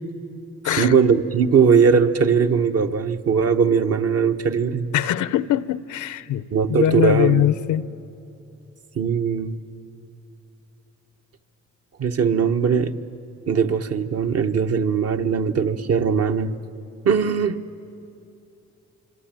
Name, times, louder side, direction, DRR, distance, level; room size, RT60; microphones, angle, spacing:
voice 1, 0.8-4.9 6.5-7.5 8.9-9.6 12.0-12.9 13.5-16.6 17.0-17.6, right 6 dB, 55° right, 1.3 m, -20 dB
voice 2, 4.9-7.9, left 12 dB, 75° left, 0.8 m, -22 dB
25.5 x 25.0 x 9.1 m
cardioid pair, 90°, 30 cm